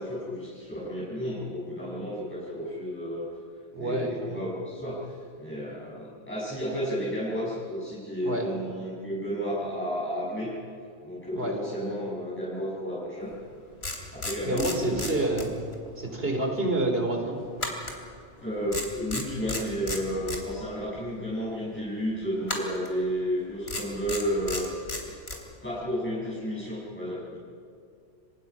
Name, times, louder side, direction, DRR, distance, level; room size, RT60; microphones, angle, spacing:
voice 1, 0.0-3.3 3.7-10.6 11.0-13.3 14.1-15.2 18.4-24.7 25.6-27.4, equal, 10° left, -9 dB, 6.6 m, -32 dB
voice 2, 3.7-4.4 8.2-8.5 11.4-11.6 14.4-15.5 16.0-17.4, right 1 dB, 55° right, 3 dB, 4.2 m, -28 dB
sound 1, 13.3-13.4 13.8-15.9 16.1-16.3 17.6-18.4 18.7-20.4 22.4-22.9 23.7-25.4, left 2 dB, 60° left, 3.7 m, -34 dB
29.5 x 25.0 x 5.7 m, 2.4 s
omnidirectional pair, 1.2 m